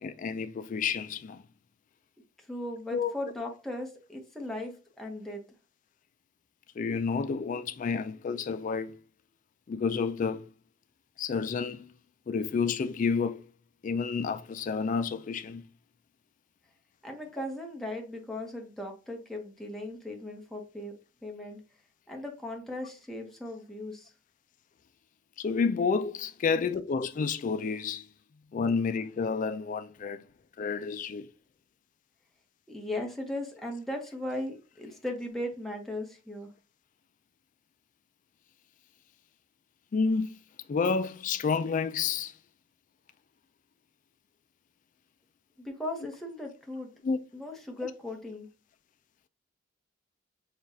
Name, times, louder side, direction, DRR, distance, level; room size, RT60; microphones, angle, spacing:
voice 1, 0.0-1.4 2.9-3.1 6.8-9.0 9.7-10.4 11.2-11.9 12.3-13.4 13.8-15.6 25.4-28.1 28.5-30.2 30.6-31.3 39.9-40.4 40.7-42.3 47.0-47.2, left 5 dB, 40° left, 0.3 m, -30 dB
voice 2, 2.5-5.4 17.0-20.9 21.2-21.6 22.1-24.1 32.7-36.5 45.6-46.9 47.3-48.5, left 1 dB, ahead, 0.9 m, -37 dB
6.5 x 2.4 x 2.7 m
head